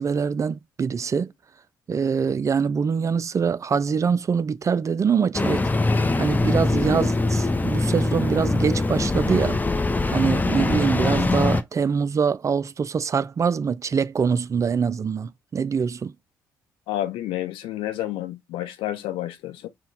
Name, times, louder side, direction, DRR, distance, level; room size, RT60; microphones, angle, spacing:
voice 1, 0.0-1.3 1.9-5.7 6.2-9.6 10.1-16.1, right 6 dB, 35° right, 0.3 m, -24 dB
Engine starting, 5.3-11.6, left 2 dB, 20° left, 0.6 m, -22 dB
voice 2, 16.9-19.7, left 14 dB, 65° left, 0.7 m, -30 dB
4.2 x 2.2 x 3.8 m
figure-of-eight pair, 40°, 9 cm